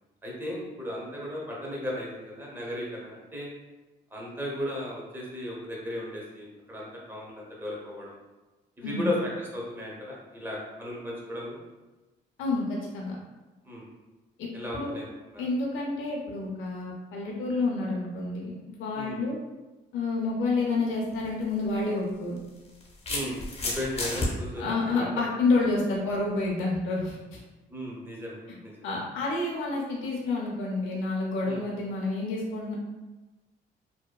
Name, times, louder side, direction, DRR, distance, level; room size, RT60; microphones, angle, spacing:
voice 1, 0.2-3.5 4.1-8.1 8.8-11.6 13.6-13.9 14.5-15.4 18.9-19.2 23.1-25.1 27.7-28.9 31.4-31.6, left 1 dB, 10° right, -4 dB, 0.7 m, -36 dB
voice 2, 8.8-9.1 12.4-13.2 14.4-14.9 15.4-19.4 19.9-22.4 24.6-27.4 28.5-28.6 28.8-32.7, left 3 dB, 85° left, -3 dB, 0.5 m, -29 dB
sound 1, 21.1-21.3 22.4-24.3, left 2 dB, 30° left, 0.7 m, -31 dB
2.6 x 2.2 x 2.3 m, 1.1 s
cardioid pair, 90°, 20 cm